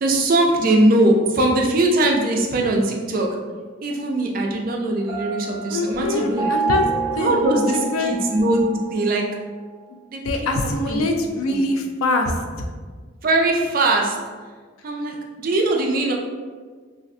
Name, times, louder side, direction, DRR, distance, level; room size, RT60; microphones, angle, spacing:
voice 1, 0.0-3.3 3.8-6.5 7.2-9.2 10.1-10.2 10.6-11.0 11.5-11.6 13.2-14.2 14.8-16.1, right 2 dB, 45° right, 1 dB, 0.4 m, -20 dB
Piano, 5.1-8.9, right 5 dB, 15° right, 0.7 m, -28 dB
voice 2, 5.7-6.9 7.2-7.4 7.9-8.2 10.2-12.4, left 2 dB, 90° left, 4 dB, 0.4 m, -23 dB
2.6 x 2.4 x 3.2 m, 1.5 s
head